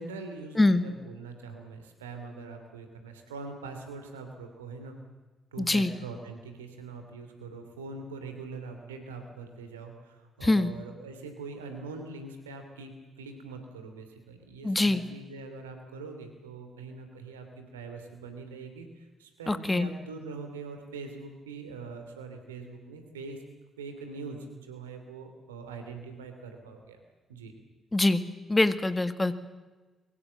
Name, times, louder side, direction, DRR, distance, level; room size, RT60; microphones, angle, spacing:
voice 1, 0.0-5.0 5.5-23.4 23.8-27.0 27.3-27.5, right 4 dB, 85° right, 6 dB, 3.0 m, -43 dB
voice 2, 5.6-5.9 10.4-10.7 14.6-15.0 19.5-19.9 27.9-28.2 28.5-29.3, left 2 dB, 20° left, 12 dB, 1.8 m, -24 dB
23.5 x 23.0 x 7.4 m, 1.2 s
figure-of-eight pair, 40°, 0 cm